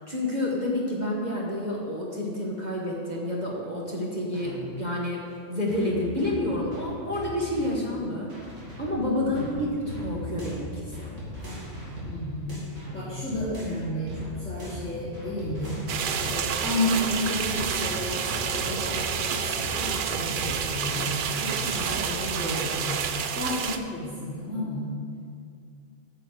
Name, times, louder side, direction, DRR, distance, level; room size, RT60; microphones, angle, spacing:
voice 1, 0.0-5.2 5.5-8.3 8.8-11.1, left 1 dB, 35° right, -4 dB, 1.3 m, -29 dB
sound 1, 4.3-4.7 5.7-7.8 8.3-13.8 14.1-16.4 16.7-21.8, equal, 75° right, 2.9 m, -38 dB
voice 2, 9.2-9.6 12.0-12.5 12.9-15.8 16.3-23.0 23.3-24.9, left 1 dB, 5° left, -12 dB, 2.5 m, -32 dB
sound 2, 15.9-23.8, right 7 dB, 60° right, 0.6 m, -29 dB
8.9 x 6.6 x 6.5 m, 2.3 s
omnidirectional pair, 1.3 m